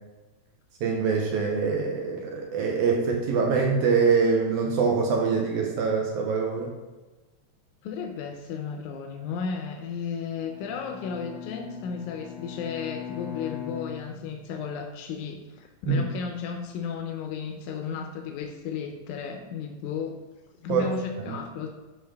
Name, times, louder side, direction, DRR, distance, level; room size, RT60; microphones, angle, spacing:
voice 1, 0.8-6.7 15.9-16.0 20.7-20.9 21.3-21.4, right 5 dB, 80° right, 0 dB, 2.2 m, -24 dB
voice 2, 7.8-20.2 20.6-21.7, left 6 dB, 85° left, 3 dB, 2.1 m, -34 dB
Bowed string instrument, 10.4-14.7, left 10 dB, 55° left, 1.3 m, -40 dB
10.5 x 3.7 x 3.4 m, 1.2 s
omnidirectional pair, 3.5 m